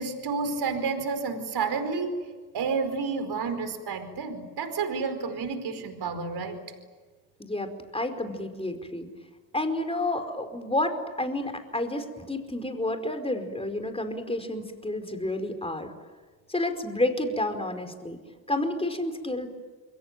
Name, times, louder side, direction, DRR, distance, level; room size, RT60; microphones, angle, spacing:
voice 1, 0.0-2.2 2.5-6.6, right 4 dB, 60° right, 8 dB, 4.9 m, -30 dB
voice 2, 7.4-9.1 9.5-15.9 16.5-18.2 18.5-19.5, left 1 dB, 15° left, 7 dB, 4.9 m, -30 dB
28.5 x 22.5 x 9.3 m, 1.4 s
supercardioid pair, 70°, 45 cm